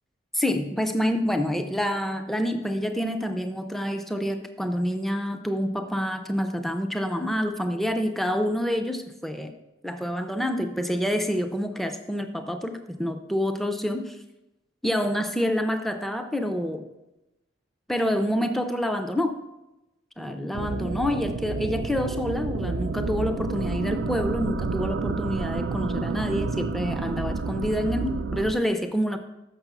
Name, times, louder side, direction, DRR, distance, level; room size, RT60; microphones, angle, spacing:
voice 1, 0.3-9.5 9.8-14.2 14.8-16.9 17.9-19.4 20.2-29.2, equal, ahead, 6 dB, 0.4 m, -27 dB
sound 1, 20.5-28.5, right 4 dB, 75° right, 0.4 m, -30 dB
6.8 x 6.0 x 5.9 m, 0.96 s
head